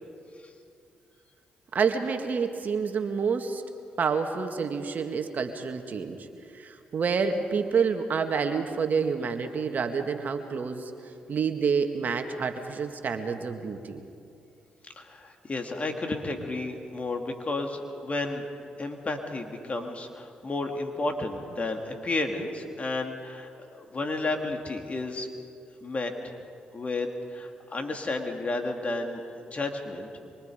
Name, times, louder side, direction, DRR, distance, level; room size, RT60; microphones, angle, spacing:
voice 1, 1.7-3.6 4.0-6.2 6.5-10.9 11.3-14.0, right 5 dB, 55° right, 6 dB, 1.9 m, -28 dB
voice 2, 15.0-18.4 18.8-25.3 25.8-26.4 26.7-30.1, left 2 dB, 40° left, 4 dB, 3.0 m, -32 dB
26.0 x 24.5 x 5.2 m, 2.5 s
hypercardioid pair, 50°, 4 cm